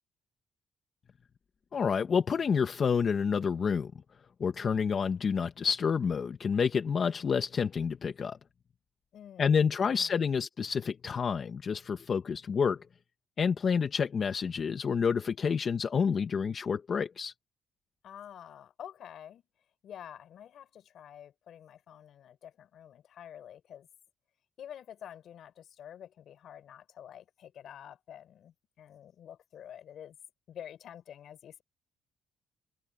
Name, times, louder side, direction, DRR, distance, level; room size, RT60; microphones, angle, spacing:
voice 1, 1.7-3.9 4.4-8.4 9.4-12.8 13.4-17.3, left 6 dB, 50° left, 1.2 m, -29 dB
voice 2, 9.1-10.3 18.0-19.4 19.8-23.9 24.6-30.2 30.5-31.6, left 10 dB, 70° left, 5.4 m, -48 dB
cardioid pair, 90°, 0 cm